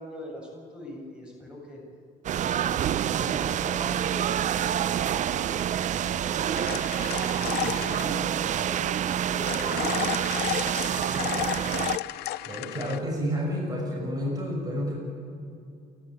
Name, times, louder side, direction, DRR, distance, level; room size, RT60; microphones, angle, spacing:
voice 1, 0.0-1.8 2.3-7.1 7.3-10.0 10.7-11.8, left 1 dB, 5° right, -1 dB, 7.2 m, -42 dB
sound 1, 2.2-12.0, right 10 dB, 45° right, 0.5 m, -27 dB
sound 2, 2.7-7.9, right 8 dB, 75° right, 1.6 m, -44 dB
sound 3, 6.6-8.1 9.5-13.0, left 15 dB, 75° left, 0.6 m, -33 dB
voice 2, 12.5-15.0, equal, 20° right, -2 dB, 6.2 m, -30 dB
29.5 x 12.5 x 8.6 m, 2.6 s
cardioid pair, 110°, 17 cm